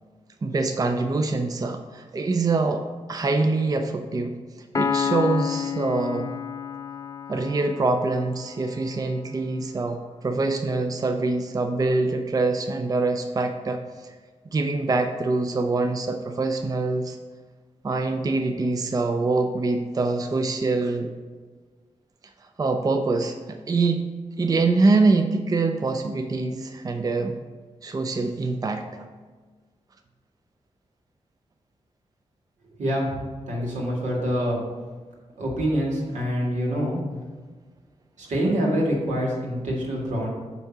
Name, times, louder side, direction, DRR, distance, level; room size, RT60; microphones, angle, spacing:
voice 1, 0.4-4.4 4.8-6.3 7.3-14.1 14.5-17.2 17.8-21.1 22.6-24.1 24.4-27.4 27.8-28.8, right 3 dB, 30° right, 5 dB, 0.5 m, -24 dB
Piano, 4.7-8.3, left 7 dB, 30° left, 0.4 m, -29 dB
voice 2, 32.8-33.2 33.5-34.6 35.4-37.0 38.2-40.3, equal, 85° right, -2 dB, 1.7 m, -25 dB
8.1 x 2.7 x 5.9 m, 1.4 s
cardioid pair, 90°, 12 cm